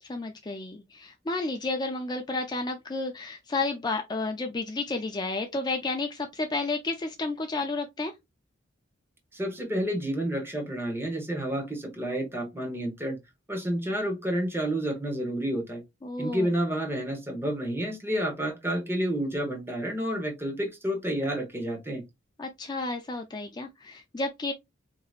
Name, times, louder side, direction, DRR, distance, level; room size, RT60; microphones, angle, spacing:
voice 1, 0.0-8.1 16.0-16.5 22.4-24.5, left 3 dB, 20° left, 0.4 m, -31 dB
voice 2, 9.3-13.2 13.5-15.8 16.2-22.0, right 1 dB, 10° right, 1.1 m, -30 dB
4.6 x 2.9 x 2.4 m
head